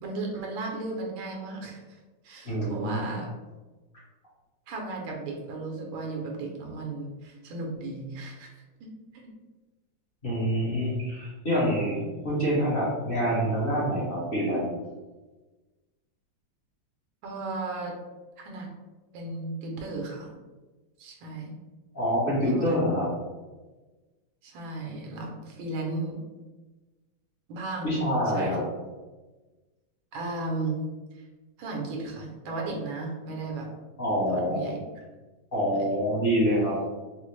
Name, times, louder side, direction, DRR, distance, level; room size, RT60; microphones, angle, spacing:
voice 1, 0.0-3.3 4.7-8.5 8.8-9.3 17.2-18.0 18.4-18.7 19.1-20.3 21.0-21.5 22.4-22.7 24.4-26.2 27.5-28.0 28.3-28.6 30.1-30.8 31.1-31.2 31.6-33.7 34.3-34.8, right 3 dB, 85° right, 0 dB, 1.5 m, -35 dB
voice 2, 2.4-3.0 10.2-14.7 21.9-23.1 27.8-28.6 34.0-34.7 35.5-36.8, equal, 40° left, -7 dB, 0.9 m, -26 dB
4.1 x 2.0 x 3.1 m, 1.2 s
omnidirectional pair, 2.1 m